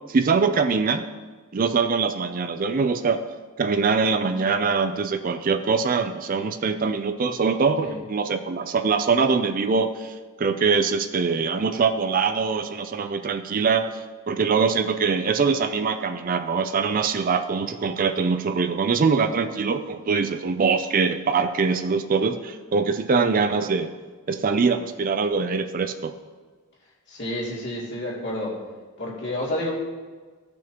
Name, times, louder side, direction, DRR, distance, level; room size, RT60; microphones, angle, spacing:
voice 1, 0.1-1.1 1.5-3.3 3.6-23.9 24.3-26.1, right 5 dB, 40° right, 8 dB, 0.4 m, -23 dB
voice 2, 27.1-28.6 29.0-29.7, left 1 dB, 50° left, -5 dB, 2.8 m, -29 dB
16.0 x 6.1 x 3.0 m, 1.4 s
head